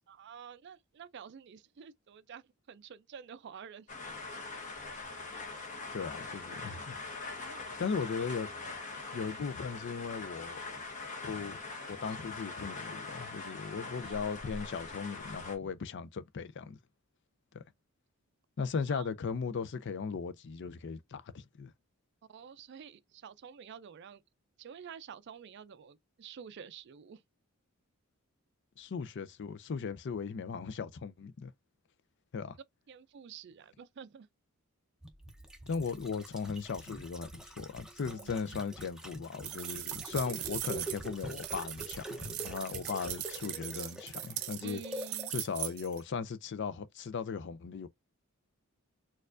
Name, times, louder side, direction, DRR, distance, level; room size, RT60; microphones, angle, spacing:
voice 1, 0.1-3.9 7.4-8.2 13.7-14.5 18.9-19.1 22.3-24.2 24.6-27.2 32.9-34.3 38.0-38.6 44.6-45.3, right 7 dB, 50° right, 0.4 m, -49 dB
sound 1, 3.9-15.6, left 3 dB, 35° left, 0.9 m, -43 dB
voice 2, 5.9-7.0 7.8-8.5 9.1-10.6 11.2-11.6 11.9-16.8 17.5-17.6 18.6-21.7 28.8-31.5 32.3-32.6 35.7-44.8 45.3-47.9, left 5 dB, 55° left, 0.4 m, -37 dB
sound 2, 35.0-45.4 45.7-45.8, right 1 dB, 5° right, 0.6 m, -45 dB
sound 3, 39.4-46.0, right 13 dB, 90° right, 0.7 m, -40 dB
4.4 x 2.4 x 2.4 m
head